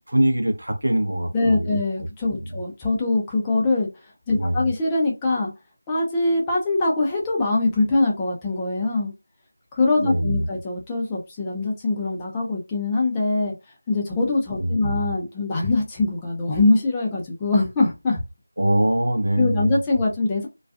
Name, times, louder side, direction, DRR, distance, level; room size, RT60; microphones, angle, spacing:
voice 1, 0.1-1.8 2.5-2.6 4.3-4.7 10.0-10.5 14.6-15.0 18.6-19.8, right 1 dB, 80° right, 0.7 m, -23 dB
voice 2, 1.3-3.9 4.3-5.5 5.9-9.1 9.7-13.5 13.9-18.2 19.3-20.5, left 2 dB, 10° left, 0.4 m, -23 dB
2.3 x 2.3 x 2.3 m
figure-of-eight pair, 170°, 0 cm